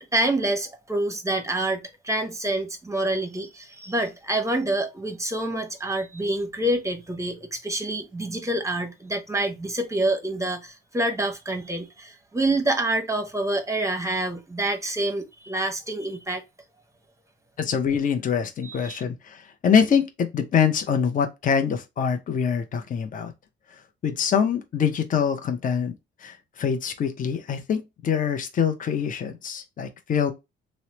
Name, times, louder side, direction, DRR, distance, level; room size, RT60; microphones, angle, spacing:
voice 1, 0.0-16.4 18.6-19.0, right 1 dB, 15° right, 0.8 m, -27 dB
voice 2, 17.6-23.3 24.0-30.3, left 7 dB, 40° left, 0.6 m, -24 dB
3.0 x 2.0 x 2.8 m
cardioid pair, 90°, 20 cm